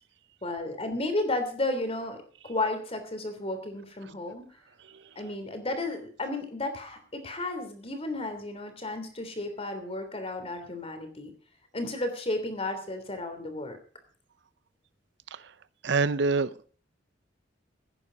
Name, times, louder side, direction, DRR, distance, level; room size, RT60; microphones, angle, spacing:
voice 1, 0.4-4.5 5.1-11.3 11.7-13.8, left 2 dB, 30° left, 3.2 m, -33 dB
voice 2, 15.8-16.7, right 4 dB, 65° right, 0.7 m, -26 dB
16.0 x 10.0 x 5.3 m
head